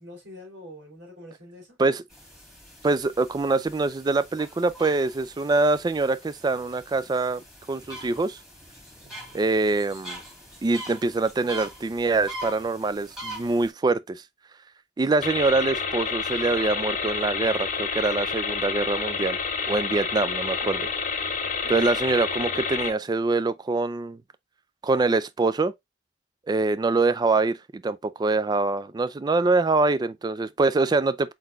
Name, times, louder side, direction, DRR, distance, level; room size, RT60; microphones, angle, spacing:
voice 1, 0.0-1.8 9.0-9.4, left 1 dB, 80° right, 2.8 m, -45 dB
sound 1, 2.1-13.7, equal, ahead, 1.8 m, -43 dB
voice 2, 2.8-8.4 9.3-10.2 10.6-14.2 15.0-19.4 19.7-20.9 21.7-24.2 24.8-25.7 26.5-31.3, right 3 dB, 20° right, 0.3 m, -24 dB
sound 2, 15.2-22.9, left 5 dB, 45° left, 0.9 m, -29 dB
4.5 x 3.9 x 2.4 m
head